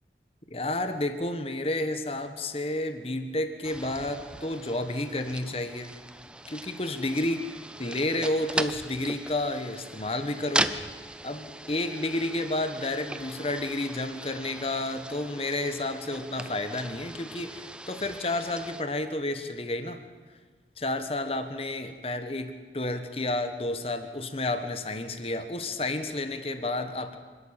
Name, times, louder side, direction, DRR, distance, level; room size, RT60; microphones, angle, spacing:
voice 1, 0.5-5.9 6.5-7.5 7.8-10.7 11.2-20.0 20.8-27.2, left 2 dB, 35° left, 9 dB, 1.4 m, -31 dB
sound 1, 3.6-18.8, right 1 dB, 5° right, 0.6 m, -38 dB
26.5 x 12.5 x 9.0 m, 1.4 s
head